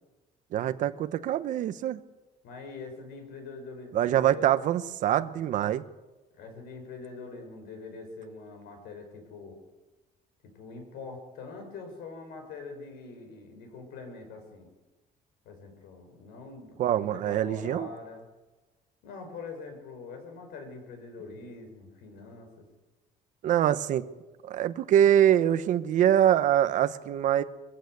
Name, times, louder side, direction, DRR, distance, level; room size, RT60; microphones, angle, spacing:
voice 1, 0.5-2.0 3.9-5.8 16.8-17.9 23.4-24.1 24.4-27.4, right 11 dB, 50° right, 11 dB, 1.0 m, -24 dB
voice 2, 2.4-4.5 6.3-9.6 10.5-14.7 15.4-18.3 19.0-22.7, left 4 dB, 80° left, 5 dB, 5.8 m, -44 dB
22.0 x 15.5 x 8.0 m, 1.1 s
cardioid pair, 175°, 16 cm